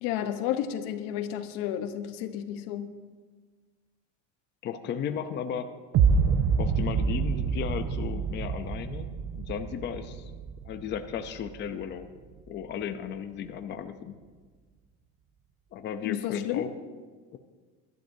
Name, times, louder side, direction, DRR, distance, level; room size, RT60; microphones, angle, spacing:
voice 1, 0.0-2.9 16.0-16.6, left 10 dB, 90° left, 9 dB, 1.0 m, -32 dB
voice 2, 4.6-5.7 6.3-10.3 10.6-12.1 12.5-14.1 15.7-16.7 17.3-17.4, left 8 dB, 35° left, 8 dB, 0.6 m, -35 dB
sound 1, 5.9-11.9, right 6 dB, 40° right, 0.7 m, -27 dB
22.0 x 12.0 x 2.7 m, 1.4 s
cardioid pair, 165°, 33 cm